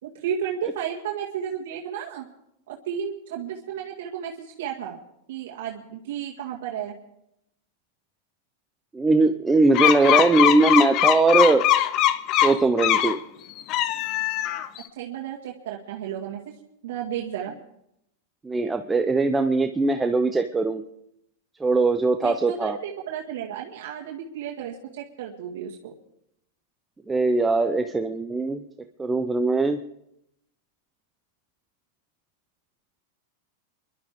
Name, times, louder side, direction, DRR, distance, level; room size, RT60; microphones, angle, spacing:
voice 1, 0.0-2.3 2.7-5.0 5.3-7.0 15.0-16.5 16.8-17.5 22.2-25.9, right 9 dB, 75° right, -1 dB, 1.9 m, -33 dB
voice 2, 8.9-11.7 12.4-13.2 18.4-20.8 21.6-22.8 27.1-28.6 29.0-29.8, right 3 dB, 10° right, 7 dB, 0.6 m, -21 dB
sound 1, 9.7-13.2 13.6-14.8, left 12 dB, 40° left, 0.7 m, -21 dB
29.0 x 12.0 x 3.6 m, 0.80 s
supercardioid pair, 135°, 0 cm